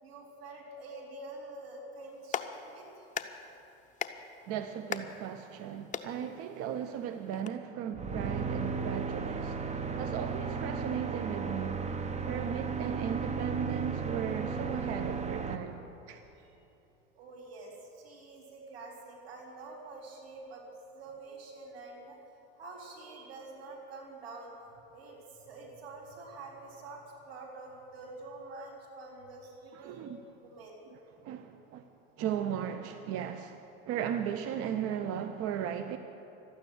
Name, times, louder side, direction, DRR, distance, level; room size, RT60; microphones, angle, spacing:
voice 1, 0.0-3.1 16.3-16.5 17.1-20.7 20.9-22.2 22.6-24.5 24.9-30.1 30.4-30.8, right 2 dB, 85° right, -1 dB, 3.8 m, -47 dB
Clapping, 2.0-7.5, left 7 dB, 25° left, 0.8 m, -42 dB
voice 2, 4.5-11.9 12.3-15.8 16.1-16.2 29.7-30.2 31.2-31.9 32.2-36.0, right 9 dB, 50° right, 8 dB, 0.8 m, -36 dB
sound 1, 7.9-15.5, right 5 dB, 25° right, 1.0 m, -34 dB
12.5 x 9.3 x 10.0 m, 2.9 s
hypercardioid pair, 100°, 30 cm